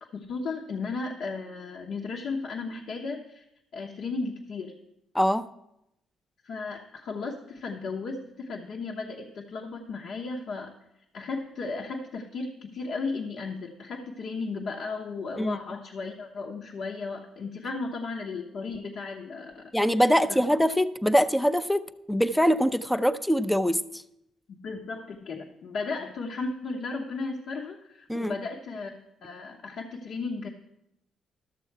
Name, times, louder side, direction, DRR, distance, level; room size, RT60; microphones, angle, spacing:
voice 1, 0.0-3.4 3.7-4.8 6.4-10.7 11.1-19.7 20.3-20.4 24.5-30.5, left 4 dB, 65° left, 0 dB, 1.0 m, -35 dB
voice 2, 5.1-5.5 15.4-15.6 19.7-24.0 28.1-28.3, equal, 5° left, 13 dB, 0.5 m, -23 dB
13.0 x 6.9 x 4.6 m, 0.83 s
cardioid pair, 90°, 0 cm